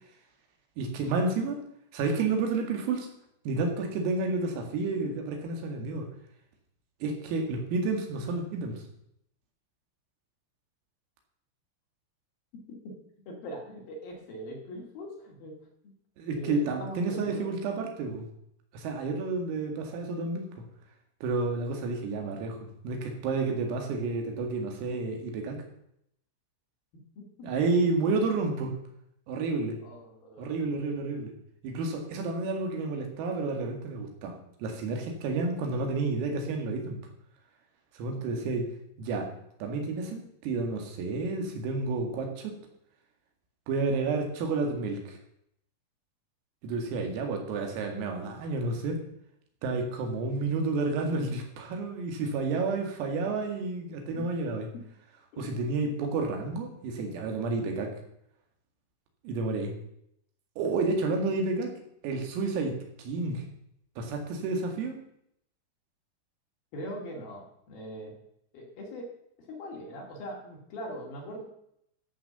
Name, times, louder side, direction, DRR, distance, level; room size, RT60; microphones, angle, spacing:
voice 1, 0.8-1.6 1.9-3.1 3.5-6.1 7.0-8.8 16.2-18.3 18.7-20.5 21.2-25.6 27.4-28.8 29.3-29.8 30.4-31.3 31.6-37.0 37.9-38.6 39.0-39.3 39.6-42.6 43.7-45.2 46.6-49.0 49.6-54.7 55.4-57.9 59.2-59.7 60.6-61.7 62.0-63.4 64.0-65.0, right 3 dB, 85° right, 3 dB, 4.8 m, -30 dB
voice 2, 13.3-15.6 15.8-15.9 16.4-17.5 27.2-27.5 29.8-30.5 54.1-54.2 55.3-55.9 66.7-68.1 68.5-69.1 69.4-71.4, equal, 55° left, -1 dB, 3.6 m, -41 dB
13.5 x 7.1 x 6.9 m, 0.73 s
omnidirectional pair, 5.9 m